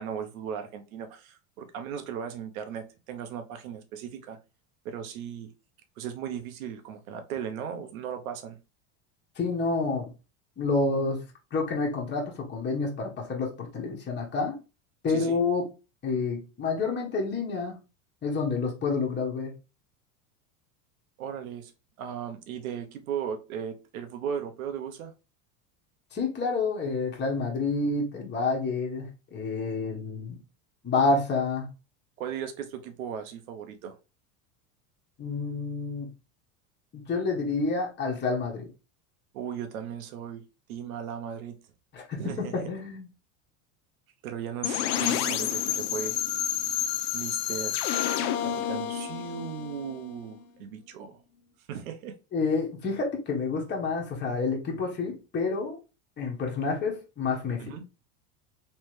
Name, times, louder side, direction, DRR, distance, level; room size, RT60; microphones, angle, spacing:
voice 1, 0.0-4.4 4.8-5.5 6.0-8.6 15.1-15.4 21.2-21.7 22.0-25.1 32.2-34.0 39.3-40.4 40.7-41.6 42.2-42.5 44.2-46.2 47.1-47.8 48.4-51.2 51.7-52.2 57.6-57.8, right 8 dB, 85° right, 0.9 m, -37 dB
voice 2, 9.4-10.1 10.6-11.2 11.5-14.6 15.0-15.7 16.0-17.8 18.2-19.5 26.1-30.4 30.8-31.7 35.2-36.1 36.9-38.7 41.9-43.1 52.3-55.8 56.2-57.7, left 4 dB, 25° left, 1.3 m, -29 dB
sound 1, 44.6-50.4, left 10 dB, 60° left, 0.7 m, -29 dB
3.3 x 3.2 x 3.2 m
supercardioid pair, 110°, 41 cm